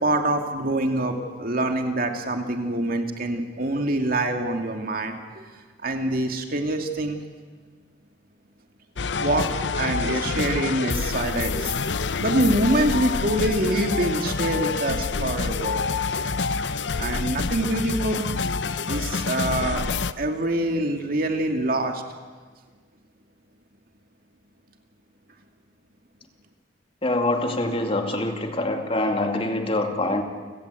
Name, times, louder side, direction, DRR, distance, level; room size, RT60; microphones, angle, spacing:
voice 1, 0.0-5.2 5.8-7.2 9.2-9.5 9.7-11.7 12.2-15.8 17.0-18.3 18.9-19.8 20.2-22.0, right 1 dB, 55° right, 4 dB, 2.4 m, -25 dB
sound 1, 9.0-20.1, left 4 dB, 90° left, 0.8 m, -27 dB
voice 2, 27.0-30.2, left 2 dB, 35° left, 4 dB, 2.3 m, -25 dB
29.5 x 17.0 x 8.4 m, 1.5 s
head